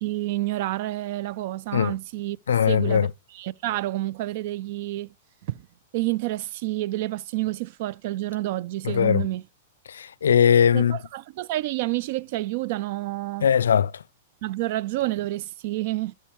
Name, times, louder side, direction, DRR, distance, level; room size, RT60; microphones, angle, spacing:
voice 1, 0.0-2.4 2.7-5.1 5.5-5.7 5.9-9.4 10.7-13.5 14.4-16.1, right 17 dB, 55° right, 0.3 m, -29 dB
voice 2, 2.5-3.1 8.8-9.3 9.9-11.0 13.4-14.0, left 8 dB, 80° left, 0.4 m, -20 dB
13.0 x 5.7 x 3.1 m
hypercardioid pair, 115°, 0 cm